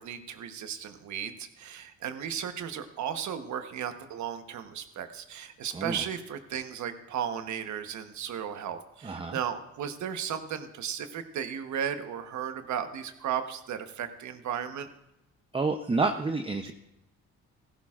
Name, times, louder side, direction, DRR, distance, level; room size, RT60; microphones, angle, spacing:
voice 1, 0.0-14.9 16.6-16.7, right 8 dB, 70° right, 8 dB, 1.1 m, -35 dB
voice 2, 5.7-6.0 9.0-9.4 15.5-16.7, right 3 dB, 20° right, 6 dB, 0.7 m, -29 dB
15.5 x 15.0 x 2.5 m, 0.87 s
cardioid pair, 90°, 30 cm